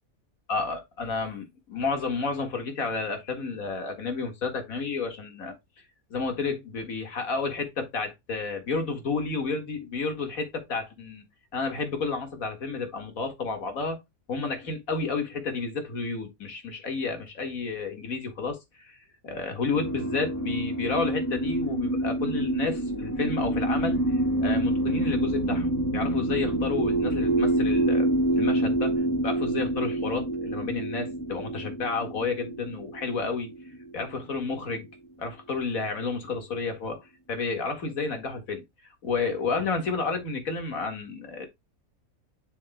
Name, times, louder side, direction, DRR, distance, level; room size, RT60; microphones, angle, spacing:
voice 1, 0.5-5.5 6.1-11.2 11.5-14.0 14.3-28.1 28.4-28.9 29.2-33.5 33.9-34.9 35.2-38.6 39.0-41.5, left 4 dB, 75° left, 2.3 m, -31 dB
sound 1, 19.7-34.3, right 1 dB, 10° left, 3.0 m, -27 dB
7.2 x 6.7 x 2.2 m
omnidirectional pair, 1.5 m